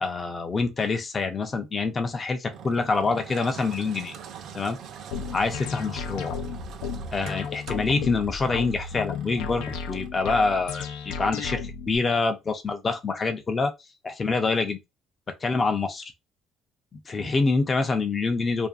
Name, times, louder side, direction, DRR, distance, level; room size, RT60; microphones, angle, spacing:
voice 1, 0.0-4.1 4.5-4.8 5.3-6.3 7.1-13.7 14.0-14.8 15.4-16.0 16.9-18.7, left 3 dB, 25° left, 0.5 m, -26 dB
Engine, 2.5-10.1, right 8 dB, 60° right, 0.4 m, -44 dB
sound 1, 5.1-12.0, left 6 dB, 90° left, 0.4 m, -34 dB
2.5 x 2.5 x 2.3 m
cardioid pair, 125°, 0 cm